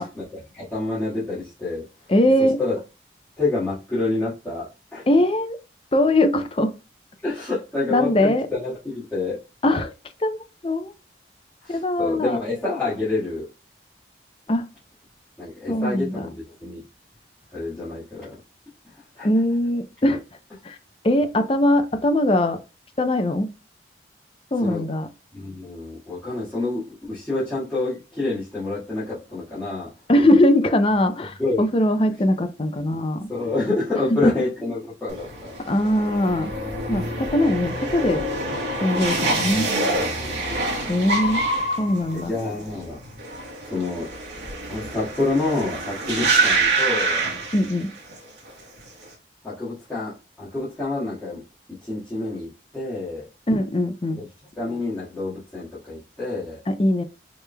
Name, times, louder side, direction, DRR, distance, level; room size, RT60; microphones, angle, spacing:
voice 1, 0.0-2.1 2.4-2.8 3.4-5.1 7.2-9.4 11.6-13.5 15.4-16.8 17.5-18.3 18.9-19.3 24.6-24.8 25.3-29.9 31.4-31.7 33.3-35.7 39.9-40.5 42.1-43.0 43.6-44.1 44.7-47.2 49.4-51.4 51.7-53.3 54.2-54.3 54.5-56.6, left 2 dB, 10° left, 1.6 m, -28 dB
voice 2, 2.1-2.6 5.1-5.6 5.9-6.7 7.9-8.5 9.6-9.9 10.2-10.9 11.7-12.4 14.5-14.6 15.7-16.3 19.2-20.2 20.6-20.8 21.0-22.6 23.0-23.5 24.5-25.1 30.1-33.3 34.1-34.3 35.7-36.5 36.9-38.2 38.8-39.7 40.9-41.5 41.8-42.3 47.5-47.9 53.5-54.2 56.7-57.0, left 1 dB, 30° left, 0.5 m, -21 dB
sound 1, 35.1-48.2 48.5-49.0, right 2 dB, 70° right, 1.3 m, -26 dB
4.9 x 3.3 x 2.2 m
head